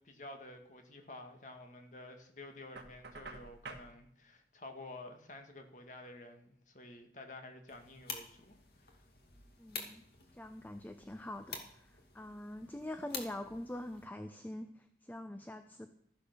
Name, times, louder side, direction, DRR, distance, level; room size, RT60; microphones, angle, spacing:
voice 1, 0.0-8.5 8.8-9.0, left 2 dB, 45° left, 5 dB, 2.0 m, -51 dB
Knock, 2.7-3.9, right 3 dB, 75° right, 2.0 m, -48 dB
sound 1, 7.7-14.1, left 5 dB, 60° left, 2.5 m, -49 dB
voice 2, 9.6-10.1 10.3-15.9, left 1 dB, 10° left, 8 dB, 0.6 m, -44 dB
13.5 x 10.5 x 6.9 m, 0.67 s
head